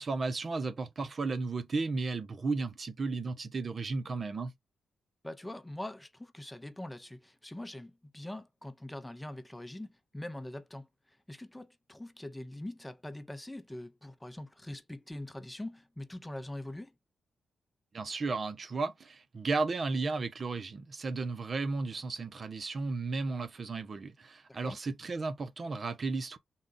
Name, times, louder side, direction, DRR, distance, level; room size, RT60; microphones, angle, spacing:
voice 1, 0.0-4.5 17.9-26.4, right 3 dB, 50° right, 0.7 m, -34 dB
voice 2, 5.2-16.9 24.5-24.8, left 1 dB, 10° left, 0.7 m, -43 dB
3.9 x 2.4 x 3.8 m
supercardioid pair, 45°, 0 cm